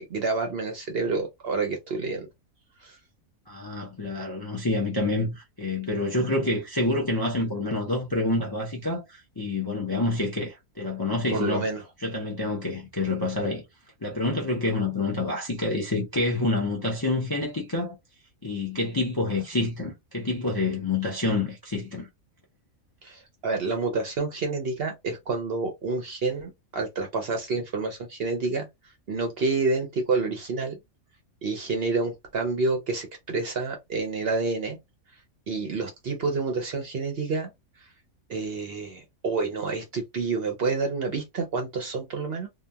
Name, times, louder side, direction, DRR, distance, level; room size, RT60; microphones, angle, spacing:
voice 1, 0.0-2.3 2.8-3.0 11.3-11.8 23.0-28.7 29.1-30.8 31.4-34.8 35.5-37.5 38.3-42.5, right 3 dB, 55° right, 0.7 m, -28 dB
voice 2, 3.5-11.7 12.0-13.6 14.0-18.0 18.4-22.1, left 2 dB, 30° left, 0.4 m, -27 dB
2.9 x 2.2 x 2.3 m
omnidirectional pair, 1.5 m